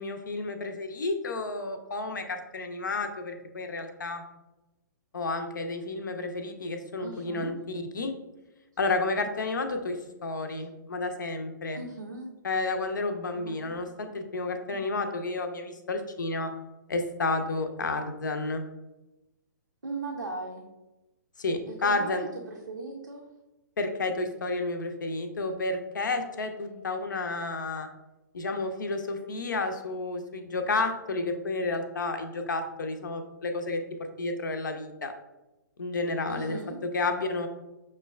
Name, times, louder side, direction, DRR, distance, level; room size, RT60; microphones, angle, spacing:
voice 1, 0.0-4.2 5.1-8.1 8.8-11.8 12.4-16.5 16.9-18.6 21.4-22.2 23.8-27.9 28.3-33.8 34.2-35.1 35.8-36.6 36.9-37.5, left 3 dB, 70° left, 6 dB, 0.5 m, -31 dB
voice 2, 7.0-7.6 11.7-12.3 13.3-13.8 14.7-14.8 19.8-20.7 21.7-23.2 26.6-26.8 36.3-36.8, right 3 dB, 80° right, 0 dB, 0.5 m, -38 dB
6.1 x 2.2 x 2.3 m, 1.0 s
figure-of-eight pair, 125°, 11 cm